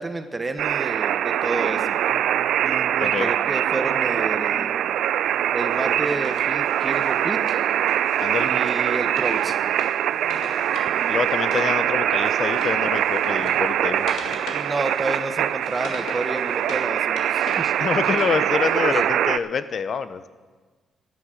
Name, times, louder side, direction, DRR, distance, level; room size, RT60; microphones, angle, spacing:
voice 1, 0.0-2.0 2.6-4.8 5.5-7.6 8.4-9.6 14.5-17.7 18.9-19.1, right 2 dB, 20° right, 8 dB, 0.9 m, -30 dB
sound 1, 0.6-19.4, right 11 dB, 80° right, 0.3 m, -23 dB
sound 2, 1.7-14.5, right 1 dB, 10° left, 2.8 m, -47 dB
voice 2, 3.0-3.3 8.2-8.5 11.1-14.1 17.8-20.2, left 6 dB, 50° left, 14 dB, 0.6 m, -26 dB
Wood, 5.7-11.7 12.0-16.9 17.2-18.9, left 3 dB, 85° left, 2.1 m, -41 dB
13.5 x 10.0 x 6.3 m, 1.4 s
cardioid pair, 125°, 0 cm